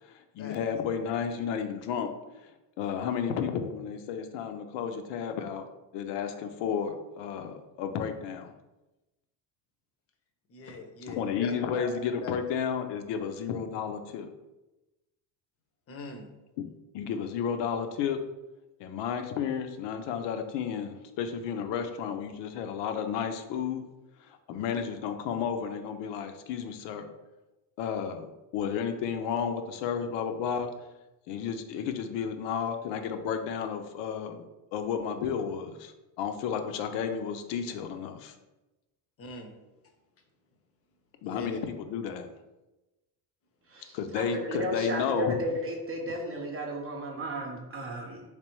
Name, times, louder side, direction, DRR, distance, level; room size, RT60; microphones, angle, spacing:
voice 1, 0.0-2.5 2.8-5.6 5.9-8.5 11.1-14.3 16.6-16.7 16.9-18.2 18.8-23.8 24.2-27.1 27.8-30.7 31.3-34.4 34.7-38.4 41.2-42.3 43.9-45.4, left 7 dB, 70° left, 7 dB, 0.6 m, -32 dB
voice 2, 10.5-11.9 12.2-12.3 15.9-16.3 39.2-39.5 41.2-41.6, left 4 dB, 30° left, 5 dB, 0.6 m, -41 dB
voice 3, 43.7-48.2, right 1 dB, 30° right, 1 dB, 0.6 m, -34 dB
3.3 x 3.2 x 3.0 m, 1.0 s
cardioid pair, 115°, 45 cm